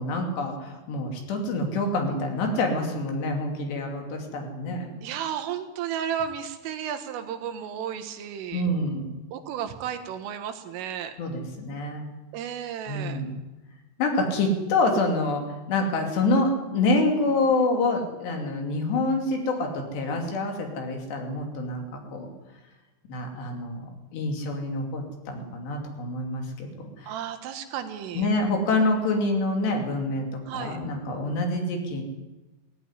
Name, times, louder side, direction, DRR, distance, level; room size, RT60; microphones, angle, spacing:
voice 1, 0.0-4.9 8.5-9.1 11.2-12.1 12.9-13.4 14.0-15.4 15.7-21.8 22.1-22.3 23.1-27.1 28.2-30.3 30.5-32.0, left 2 dB, 65° left, 2 dB, 4.6 m, -26 dB
voice 2, 5.0-8.6 9.3-11.1 12.3-13.2 27.0-28.3 30.5-30.8, right 9 dB, 90° right, 7 dB, 4.0 m, -33 dB
18.0 x 15.0 x 9.7 m, 1.1 s
omnidirectional pair, 5.6 m